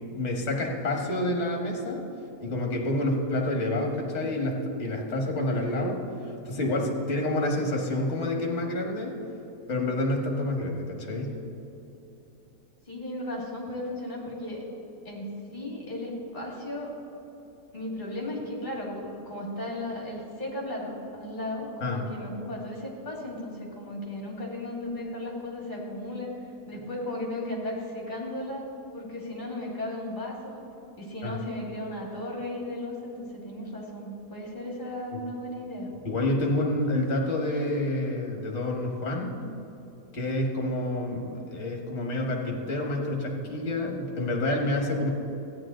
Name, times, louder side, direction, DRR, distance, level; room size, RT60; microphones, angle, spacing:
voice 1, 0.1-2.1 2.4-6.0 6.4-9.2 9.7-11.4 21.8-22.0 31.2-31.3 36.0-39.3 40.1-45.1, left 1 dB, 45° left, 1 dB, 1.7 m, -28 dB
voice 2, 12.9-14.6 15.0-17.0 17.7-26.4 26.7-28.6 28.9-30.6 31.0-35.9, left 1 dB, 30° left, -2 dB, 2.3 m, -35 dB
14.0 x 9.4 x 3.8 m, 3.0 s
omnidirectional pair, 1.8 m